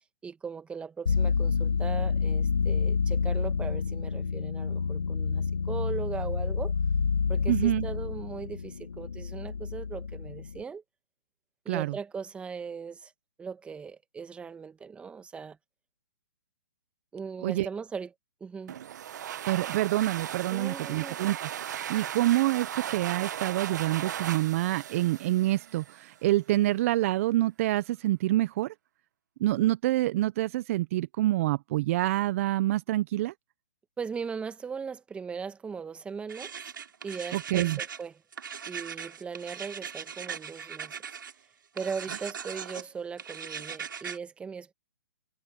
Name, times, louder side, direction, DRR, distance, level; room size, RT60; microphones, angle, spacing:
voice 1, 0.2-6.7 7.3-10.8 11.7-13.1 13.4-15.6 17.1-18.1 18.4-18.7 20.5-21.2 34.0-36.5 37.0-38.2 38.7-41.0 41.7-44.7, right 6 dB, 10° right, 1.9 m, -38 dB
sound 1, 1.1-10.6, left 5 dB, 80° left, 1.8 m, -28 dB
voice 2, 7.5-7.9 11.7-11.9 17.4-17.7 19.5-28.7 29.4-33.3 37.3-37.8, right 16 dB, 40° right, 1.0 m, -27 dB
sound 2, 18.7-26.2, right 10 dB, 55° right, 1.3 m, -37 dB
sound 3, 36.3-38.0 38.3-41.3 41.8-42.9 43.2-44.2, right 7 dB, 70° right, 6.6 m, -39 dB
hypercardioid pair, 135°, 11 cm